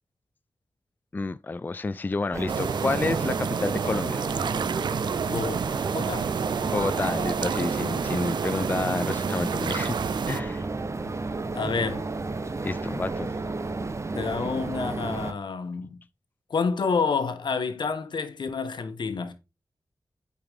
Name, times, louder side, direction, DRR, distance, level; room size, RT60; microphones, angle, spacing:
voice 1, 1.1-4.2 6.7-10.0 10.3-10.7 12.6-13.3, left 3 dB, 25° left, 0.3 m, -29 dB
sound 1, 2.3-15.3, right 3 dB, 40° right, 0.7 m, -32 dB
sound 2, 2.5-10.4, right 7 dB, 75° right, 0.4 m, -30 dB
voice 2, 5.3-5.6 5.9-6.3 11.5-12.0 14.1-16.0 16.5-19.3, left 5 dB, 80° left, 1.1 m, -28 dB
8.6 x 4.8 x 3.6 m
wide cardioid pair, 75°, 8 cm